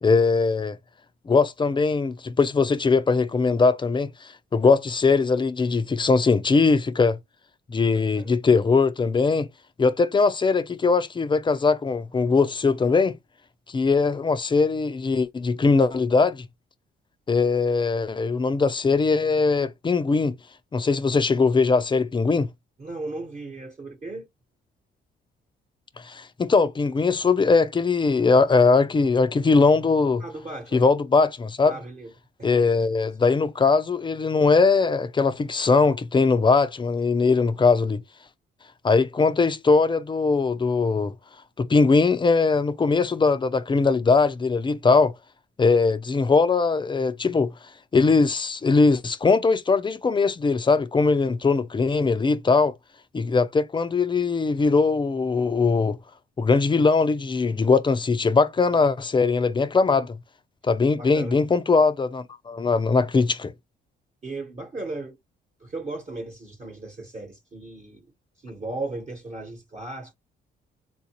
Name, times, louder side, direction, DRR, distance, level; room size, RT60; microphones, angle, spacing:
voice 1, 0.0-0.8 1.3-4.1 4.5-7.2 7.7-9.5 9.8-13.1 13.7-16.5 17.3-20.3 20.7-22.5 26.1-30.2 30.7-31.8 32.4-38.0 38.8-41.1 41.6-45.1 45.6-47.5 47.9-52.7 53.1-56.0 56.4-60.2 60.6-63.5, left 4 dB, 25° left, 0.5 m, -21 dB
voice 2, 7.9-8.3 22.8-24.3 30.2-30.8 31.7-32.1 32.4-32.9 33.2-33.3 61.0-61.4 64.2-65.2 65.6-68.1 68.4-70.1, right 2 dB, 35° right, 1.2 m, -36 dB
3.8 x 2.5 x 2.9 m
cardioid pair, 90°, 20 cm